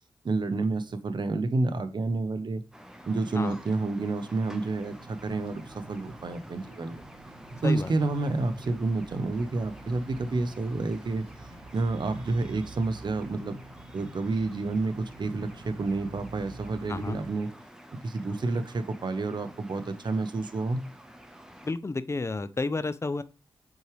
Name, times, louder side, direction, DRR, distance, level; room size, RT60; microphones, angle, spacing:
voice 1, 0.2-2.6 3.1-7.0 7.6-11.3 11.7-13.6 13.9-17.5 17.9-20.8, right 3 dB, 55° right, 0.9 m, -29 dB
sound 1, 2.7-21.7, equal, 5° right, 1.2 m, -49 dB
sound 2, 4.9-17.3, right 2 dB, 75° right, 1.9 m, -47 dB
voice 2, 21.6-23.2, left 3 dB, 30° left, 0.6 m, -31 dB
8.1 x 4.6 x 3.3 m
cardioid pair, 75°, 9 cm